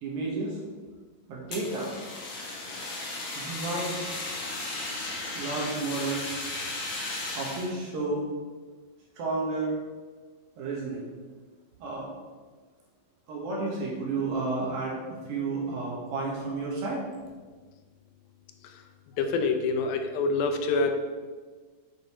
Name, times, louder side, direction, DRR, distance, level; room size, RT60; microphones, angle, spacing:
voice 1, 0.0-0.6 1.3-2.0 3.3-4.0 5.3-6.3 7.3-8.2 9.2-9.8 10.6-11.1 11.8-12.1 13.3-15.0 15.3-17.0, right 3 dB, 70° right, -3 dB, 3.3 m, -31 dB
Fire, 1.5-7.7, left 2 dB, 50° left, 1.5 m, -35 dB
voice 2, 19.2-21.0, left 3 dB, 80° left, 5 dB, 2.5 m, -26 dB
8.4 x 6.8 x 4.5 m, 1.4 s
omnidirectional pair, 4.3 m